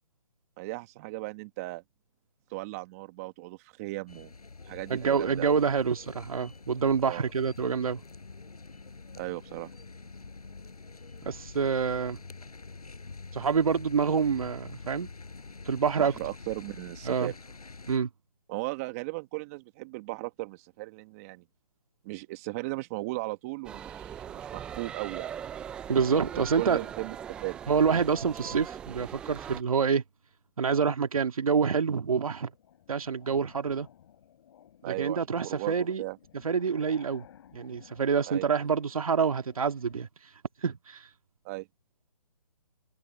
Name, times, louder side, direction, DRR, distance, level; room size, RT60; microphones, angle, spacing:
voice 1, 0.6-1.8 2.5-4.3 4.7-5.6 7.1-7.2 9.2-9.7 16.0-17.3 18.5-21.4 22.0-25.3 26.3-27.6 34.8-35.2 35.4-36.2 38.3-38.5 41.4-41.7, right 22 dB, 25° right, 1.8 m, -37 dB
sound 1, 4.1-18.0, left 4 dB, 90° left, 6.9 m, -46 dB
voice 2, 4.9-8.0 11.2-12.2 13.3-15.1 15.7-16.1 17.1-17.3 17.9-18.1 25.9-26.8 27.7-30.0 30.6-32.5 32.9-33.9 34.8-36.0 36.4-37.2 37.5-40.1 40.6-41.0, right 6 dB, 70° right, 2.0 m, -27 dB
sound 2, 23.6-29.6, right 9 dB, 5° right, 0.4 m, -40 dB
sound 3, 28.8-30.0 30.5-30.9 31.3-40.1, left 10 dB, 45° left, 7.5 m, -58 dB
hypercardioid pair, 150°, 19 cm